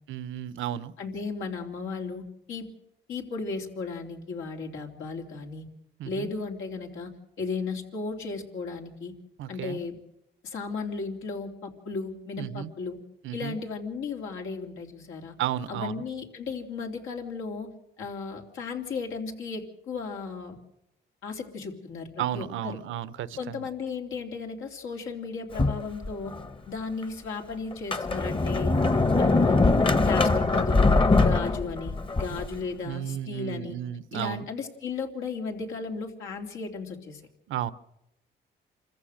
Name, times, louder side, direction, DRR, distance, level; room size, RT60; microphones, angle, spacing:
voice 1, 0.1-0.9 6.0-6.3 9.4-9.8 12.4-12.7 13.2-13.6 15.4-16.0 22.2-23.7 32.8-34.5 37.5-37.7, right 11 dB, 80° right, 16 dB, 0.9 m, -33 dB
voice 2, 1.0-2.2 2.5-2.7 3.1-5.7 6.0-7.1 7.4-9.1 9.5-10.0 10.4-13.0 13.3-15.3 15.7-17.7 18.0-20.6 21.2-22.8 23.4-26.3 26.7-28.7 29.2-29.6 30.0-33.7 34.1-37.2, left 4 dB, 80° left, 2 dB, 3.3 m, -35 dB
Sliding door, 25.5-26.5 27.0-27.1 27.7-32.5, left 3 dB, 25° left, 1.2 m, -22 dB
27.0 x 15.0 x 6.5 m, 0.84 s
cardioid pair, 90°, 20 cm